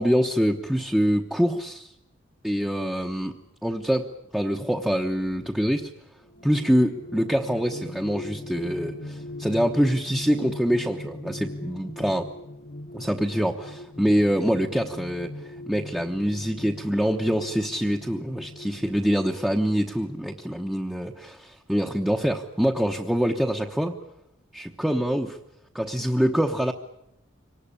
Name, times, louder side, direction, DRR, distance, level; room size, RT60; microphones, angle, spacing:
voice 1, 0.0-1.9 2.4-3.3 3.6-5.9 6.4-12.2 12.9-24.0 24.5-25.4 25.7-26.7, equal, 5° right, 1 dB, 1.0 m, -25 dB
sound 1, 6.2-19.0, left 1 dB, 50° left, 0.9 m, -39 dB
24.5 x 19.0 x 10.0 m, 0.83 s
head